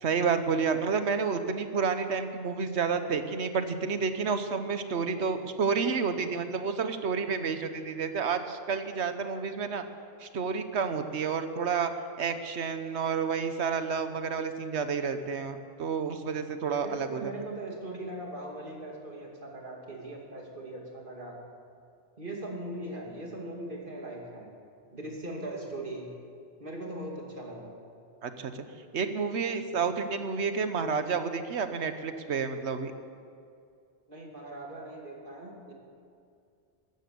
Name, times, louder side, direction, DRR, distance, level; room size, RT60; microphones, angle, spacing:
voice 1, 0.0-9.8 10.2-11.9 12.2-17.3 28.2-28.6 28.9-32.9, right 5 dB, 75° right, 9 dB, 1.3 m, -30 dB
voice 2, 16.6-21.4 22.2-24.5 24.9-26.1 26.6-27.7 34.1-35.7, right 1 dB, 50° right, -1 dB, 2.6 m, -40 dB
14.5 x 13.0 x 6.9 m, 2.4 s
omnidirectional pair, 1.2 m